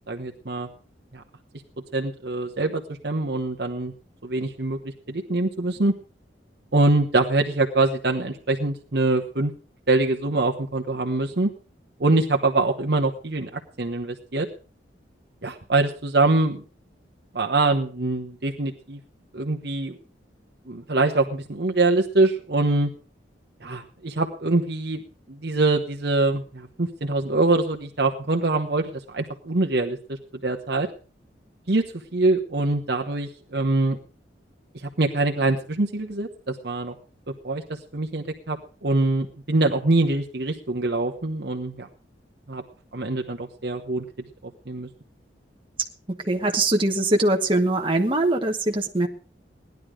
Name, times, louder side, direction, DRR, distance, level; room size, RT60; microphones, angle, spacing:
voice 1, 0.1-0.7 1.1-1.2 1.9-3.9 4.2-5.9 6.7-9.5 9.9-11.5 12.0-14.5 15.4-16.6 17.3-19.0 19.3-20.0 20.7-22.9 23.6-25.0 25.3-30.9 31.7-31.8 32.1-34.0 34.7-36.9 37.4-41.9 42.5-42.6 42.9-44.0 44.4-44.9, right 2 dB, 65° right, 3 dB, 1.1 m, -24 dB
voice 2, 46.1-49.1, right 2 dB, 30° right, 2 dB, 1.2 m, -22 dB
17.5 x 11.0 x 4.9 m, 0.38 s
head